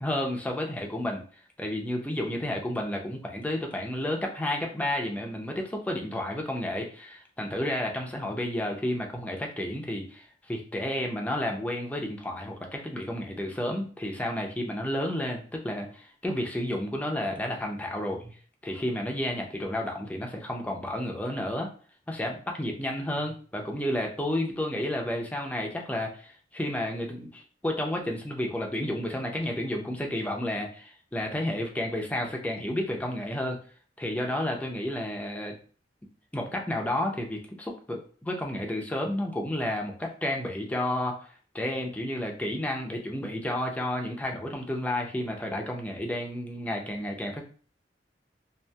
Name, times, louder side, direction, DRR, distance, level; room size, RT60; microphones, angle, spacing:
voice 1, 0.0-1.2 1.6-18.3 18.6-21.7 22.1-33.6 34.0-35.6 36.3-41.2 41.5-47.4, left 1 dB, 10° left, 1 dB, 0.4 m, -31 dB
2.7 x 2.4 x 2.2 m, 0.43 s
head